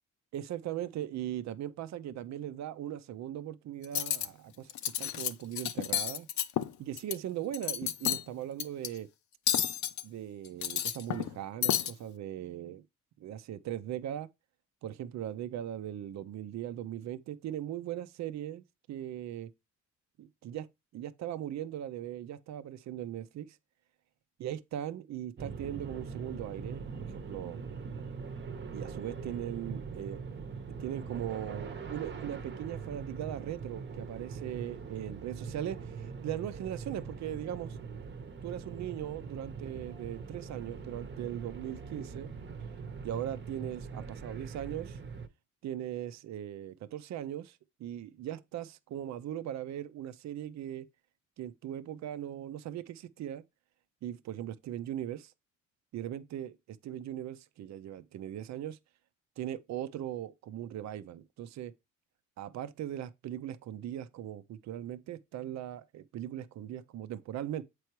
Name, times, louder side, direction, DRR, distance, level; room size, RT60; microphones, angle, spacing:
voice 1, 0.3-4.7 5.0-6.3 6.8-9.1 10.0-12.8 13.2-14.3 14.8-19.5 20.2-20.7 20.9-23.6 24.4-27.6 28.7-30.2 30.8-37.8 38.4-42.3 43.0-45.0 45.6-50.9 51.4-53.4 54.0-55.3 55.9-58.8 59.4-61.7 62.4-67.7, right 11 dB, 65° right, 0.6 m, -39 dB
Cutlery silverware, 3.8-4.3 4.7-5.3 5.6-7.2 7.5-8.2 8.6-8.9 9.5-10.0 10.5-11.3 11.6-11.9, left 10 dB, 70° left, 0.7 m, -31 dB
sound 1, 25.4-45.3, right 5 dB, 35° right, 0.9 m, -42 dB
7.7 x 4.6 x 3.0 m
cardioid pair, 90°, 30 cm